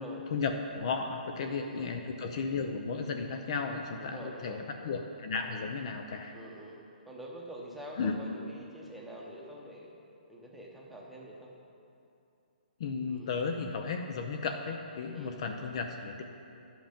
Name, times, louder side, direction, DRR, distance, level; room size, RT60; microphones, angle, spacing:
voice 1, 0.3-6.3 8.0-8.2 12.8-16.2, left 4 dB, 35° left, 5 dB, 0.6 m, -34 dB
voice 2, 1.4-1.9 4.0-4.7 6.3-9.9 10.3-11.5 13.1-13.3 15.1-15.4, right 1 dB, ahead, -4 dB, 0.9 m, -46 dB
11.0 x 7.9 x 5.1 m, 2.7 s
hypercardioid pair, 170°, 5 cm